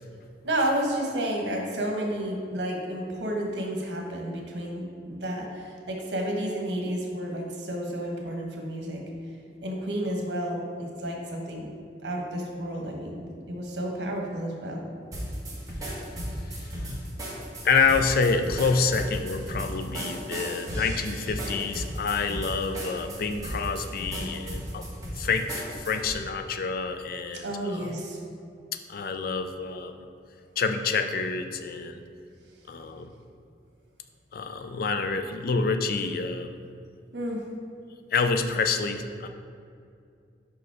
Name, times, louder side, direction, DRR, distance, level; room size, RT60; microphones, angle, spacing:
voice 1, 0.4-9.0 9.6-11.7 12.0-14.8 27.4-28.2 37.1-37.4, right 1 dB, 80° right, 0 dB, 1.1 m, -31 dB
sound 1, 15.1-26.2, equal, 20° right, 1.2 m, -35 dB
voice 2, 16.5-17.0 17.6-24.9 25.1-27.9 28.9-30.1 30.6-32.0 32.7-33.1 34.3-36.6 38.1-39.3, left 4 dB, 55° left, 7 dB, 0.4 m, -27 dB
5.2 x 4.9 x 4.7 m, 2.4 s
head